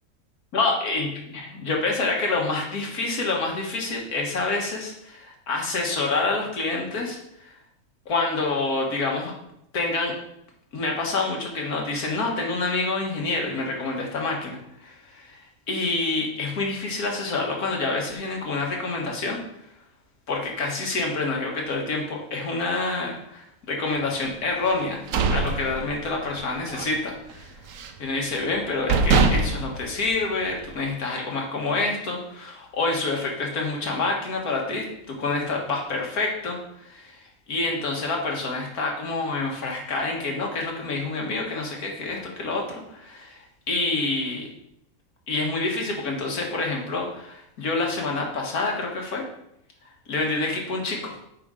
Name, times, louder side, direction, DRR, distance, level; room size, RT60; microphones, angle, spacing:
voice 1, 0.5-7.6 8.1-9.3 9.7-10.1 10.7-19.4 20.3-25.0 25.3-27.5 28.0-37.2 37.5-44.5 45.3-49.2 50.1-51.2, left 3 dB, 90° left, 0 dB, 2.0 m, -27 dB
sound 1, 24.8-26.4 26.7-27.0 27.3-28.1 28.5-28.6 28.9-30.7, right 4 dB, 70° right, 1.1 m, -23 dB
8.7 x 5.3 x 3.8 m, 0.77 s
omnidirectional pair, 1.5 m